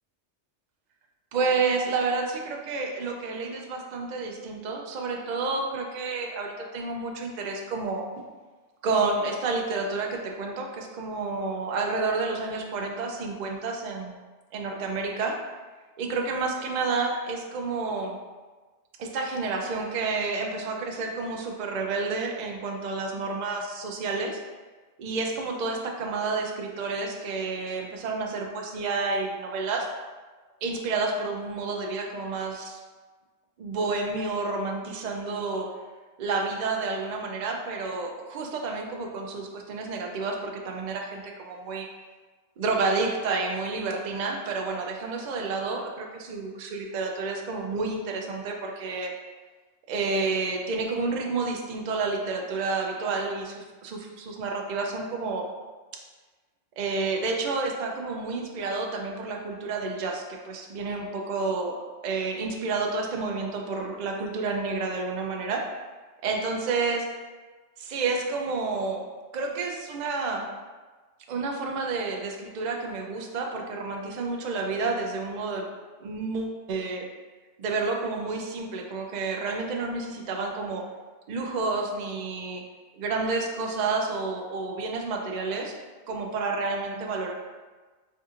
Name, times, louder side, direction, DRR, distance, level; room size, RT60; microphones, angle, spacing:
voice 1, 1.3-8.0 8.8-14.1 14.5-15.4 16.0-18.2 19.0-24.4 25.0-29.9 30.6-32.8 33.6-35.7 36.2-41.9 42.6-49.1 49.9-55.5 56.8-61.8 62.0-65.6 66.2-67.1 67.8-69.1 69.3-70.5 71.3-75.7 76.0-77.1 77.6-80.9 81.3-82.6 83.0-85.7 86.1-87.3, right 3 dB, 60° right, 1 dB, 0.5 m, -30 dB
4.4 x 2.8 x 2.4 m, 1.3 s
omnidirectional pair, 1.2 m